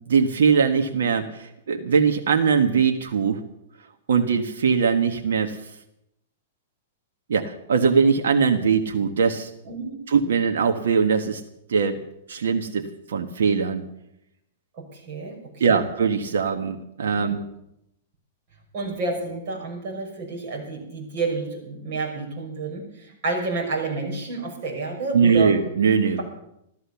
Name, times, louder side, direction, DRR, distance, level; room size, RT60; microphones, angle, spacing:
voice 1, 0.1-3.4 4.1-5.6 7.3-9.5 10.1-11.4 11.7-12.0 12.3-13.8 15.6-17.4 25.1-26.2, right 6 dB, 90° right, 5 dB, 1.4 m, -21 dB
voice 2, 14.8-15.8 17.1-17.3 18.7-25.5, right 3 dB, 45° right, 0 dB, 6.0 m, -30 dB
13.5 x 13.5 x 7.0 m, 0.81 s
hypercardioid pair, 150°, 0 cm